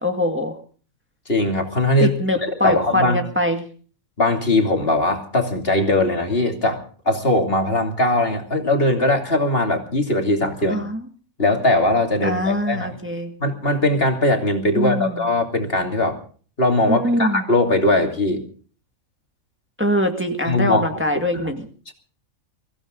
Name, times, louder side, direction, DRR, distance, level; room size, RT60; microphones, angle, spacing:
voice 1, 0.0-0.5 2.0-3.6 10.7-11.0 12.2-13.3 14.7-15.2 16.9-17.5 19.8-21.6, left 1 dB, 10° right, 4 dB, 1.9 m, -23 dB
voice 2, 1.3-3.2 4.2-10.8 11.4-13.0 13.4-16.2 16.6-18.4 20.4-21.0 21.3-21.4 21.9-22.0, left 1 dB, 45° left, 4 dB, 3.1 m, -20 dB
24.0 x 16.0 x 3.9 m, 0.42 s
omnidirectional pair, 1.4 m